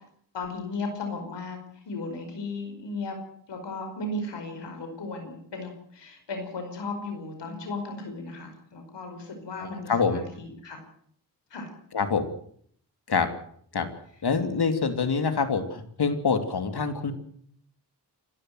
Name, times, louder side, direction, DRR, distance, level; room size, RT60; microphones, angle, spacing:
voice 1, 0.3-1.6 1.9-3.2 3.5-10.8 11.5-11.7, left 3 dB, 85° left, 5 dB, 5.3 m, -35 dB
voice 2, 9.6-10.2 11.9-12.3 13.1-13.3 13.7-13.9 14.2-17.1, left 5 dB, 65° left, 8 dB, 3.0 m, -25 dB
29.0 x 12.0 x 8.0 m, 0.64 s
cardioid pair, 60°, 41 cm